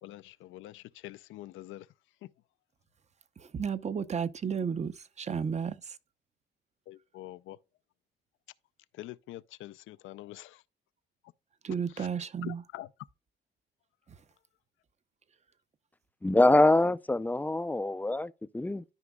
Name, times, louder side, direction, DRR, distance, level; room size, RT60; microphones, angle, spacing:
voice 1, 0.0-1.9 6.9-7.6 9.0-10.6 12.0-12.1 12.4-12.9, left 15 dB, 85° left, 0.5 m, -45 dB
voice 2, 3.4-6.0 11.6-12.6 14.1-14.2, right 6 dB, 35° right, 0.7 m, -33 dB
voice 3, 16.2-18.8, left 2 dB, 10° left, 0.4 m, -24 dB
13.0 x 5.1 x 2.3 m
cardioid pair, 90°, 20 cm